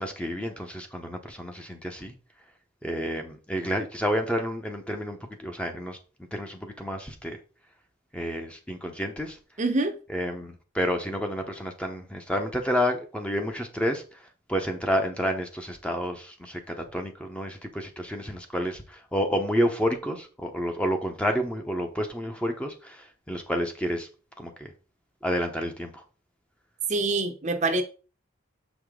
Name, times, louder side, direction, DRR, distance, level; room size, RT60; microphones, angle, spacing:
voice 1, 0.0-2.1 2.8-6.0 6.3-7.4 8.1-9.4 10.1-14.0 14.5-24.1 24.4-24.7 25.2-25.9, equal, 5° left, 0.9 m, -30 dB
voice 2, 9.6-10.0 26.9-27.8, right 2 dB, 35° right, 0.8 m, -25 dB
7.0 x 5.0 x 3.7 m
head